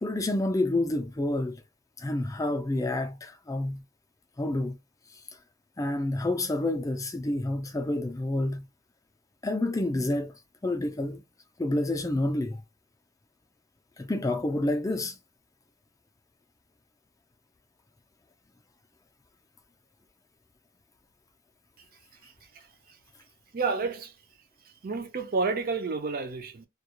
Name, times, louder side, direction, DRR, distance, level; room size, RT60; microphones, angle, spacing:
voice 1, 0.0-1.6 2.0-3.8 4.4-4.8 5.8-8.7 9.4-10.3 10.6-11.2 11.6-12.6 14.0-15.2, left 2 dB, 15° left, 0.4 m, -28 dB
voice 2, 22.2-23.0 23.5-24.1 24.8-26.7, right 4 dB, 45° right, 0.5 m, -31 dB
2.3 x 2.2 x 2.9 m
head